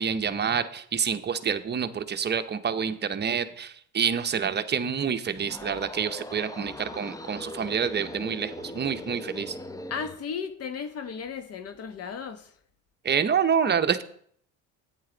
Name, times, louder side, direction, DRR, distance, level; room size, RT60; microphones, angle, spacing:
voice 1, 0.0-9.6 13.0-14.0, right 7 dB, 30° right, 10 dB, 0.8 m, -27 dB
sound 1, 5.3-10.2, left 1 dB, 10° left, 0.5 m, -40 dB
voice 2, 9.9-12.5, left 6 dB, 45° left, 9 dB, 1.1 m, -35 dB
10.5 x 9.1 x 3.9 m, 0.62 s
supercardioid pair, 95°, 33 cm